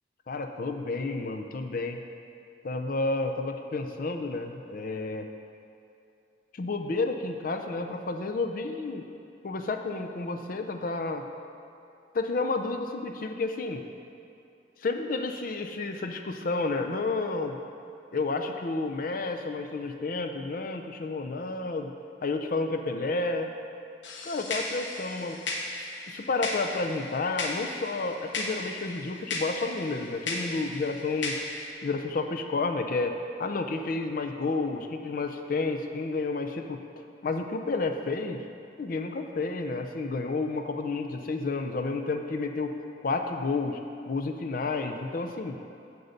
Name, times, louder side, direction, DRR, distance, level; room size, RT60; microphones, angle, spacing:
voice 1, 0.3-2.0 2.6-5.3 6.5-9.1 9.4-11.2 12.1-13.8 14.8-17.6 18.1-21.9 22.2-23.5 24.2-25.4 25.8-31.4 31.8-38.4 38.8-42.7 43.0-43.8 44.1-45.6, left 3 dB, 50° left, 5 dB, 0.5 m, -31 dB
sound 1, 24.0-31.7, left 2 dB, 85° left, 1.0 m, -36 dB
8.0 x 6.9 x 5.1 m, 2.6 s
head